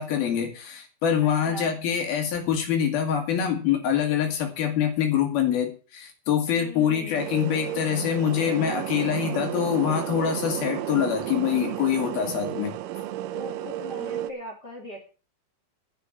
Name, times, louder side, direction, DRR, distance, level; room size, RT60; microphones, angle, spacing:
voice 1, 0.0-12.7, left 9 dB, 70° left, 3 dB, 3.7 m, -25 dB
voice 2, 1.2-1.8 6.5-7.3 12.0-12.6 13.3-15.0, left 1 dB, 30° left, 1 dB, 3.1 m, -41 dB
sound 1, 7.1-14.3, right 13 dB, 85° right, 2.8 m, -32 dB
11.5 x 7.9 x 7.3 m, 0.37 s
omnidirectional pair, 4.5 m